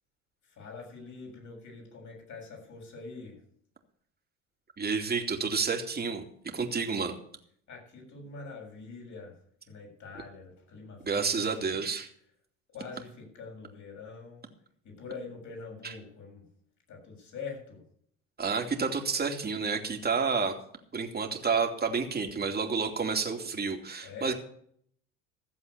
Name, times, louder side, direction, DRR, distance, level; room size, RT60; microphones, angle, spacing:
voice 1, 0.4-3.4 7.7-9.4 9.7-11.8 12.1-12.3 12.7-14.4 14.8-16.5 16.9-17.8 24.0-24.3, left 4 dB, 50° left, 0 dB, 7.4 m, -44 dB
voice 2, 4.8-7.1 11.0-12.1 18.4-20.5 20.9-24.3, right 5 dB, 25° right, 3 dB, 2.8 m, -30 dB
15.0 x 7.7 x 6.9 m, 0.63 s
hypercardioid pair, 70°, 38 cm